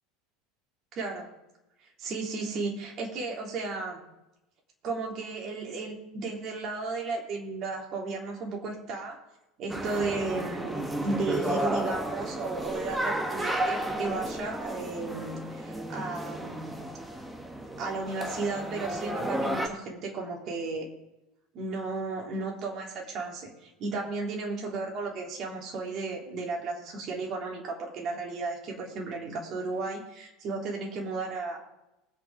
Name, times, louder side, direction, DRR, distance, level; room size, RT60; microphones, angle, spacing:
voice 1, 1.0-1.3 2.0-4.0 4.8-9.2 9.6-16.7 17.8-20.9 21.5-31.6, right 3 dB, 40° right, -1 dB, 3.4 m, -34 dB
sound 1, 9.7-19.7, right 1 dB, 10° right, 1.6 m, -33 dB
20.5 x 8.7 x 3.8 m, 0.91 s
figure-of-eight pair, 75°, 0 cm